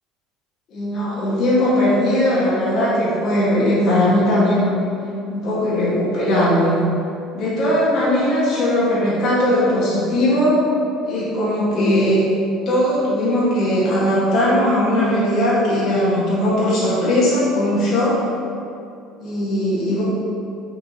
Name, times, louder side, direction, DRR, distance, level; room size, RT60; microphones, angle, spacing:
voice 1, 0.7-4.8 5.3-6.8 7.3-10.7 11.0-12.2 12.6-18.2 19.2-20.0, left 1 dB, 55° left, -8 dB, 1.3 m, -19 dB
4.3 x 2.9 x 4.0 m, 2.5 s
supercardioid pair, 105°, 0 cm